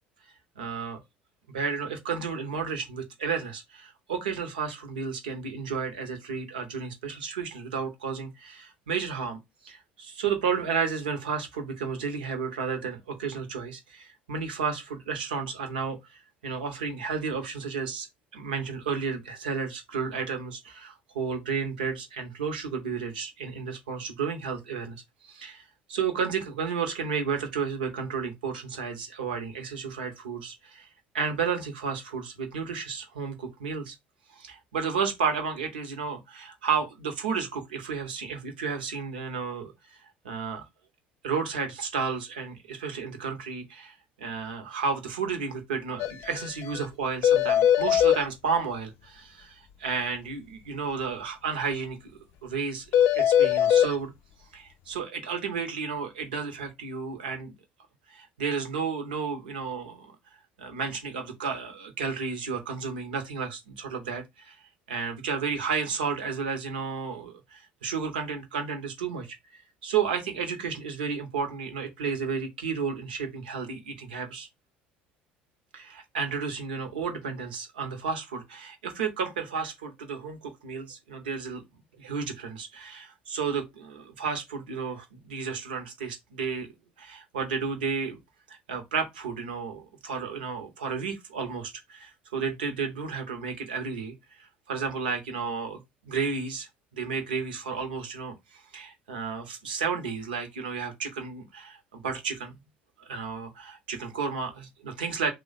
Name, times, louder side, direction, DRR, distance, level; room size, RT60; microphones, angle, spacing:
voice 1, 0.6-1.0 1.5-18.1 18.3-25.6 25.9-30.9 31.1-34.0 34.3-40.0 40.2-40.6 41.2-52.0 52.4-52.9 53.1-54.1 54.5-57.6 58.1-60.2 60.6-64.6 64.9-74.5 75.7-81.6 82.0-86.7 87.0-88.2 88.5-96.7 96.9-102.6 103.0-105.3, right 5 dB, 80° right, 0.7 m, -32 dB
sound 1, 46.0-46.1 46.4-46.5 46.8-46.9 47.2-48.2 52.9-53.9, left 10 dB, 55° left, 0.4 m, -20 dB
3.0 x 2.1 x 3.9 m
hypercardioid pair, 65°, 5 cm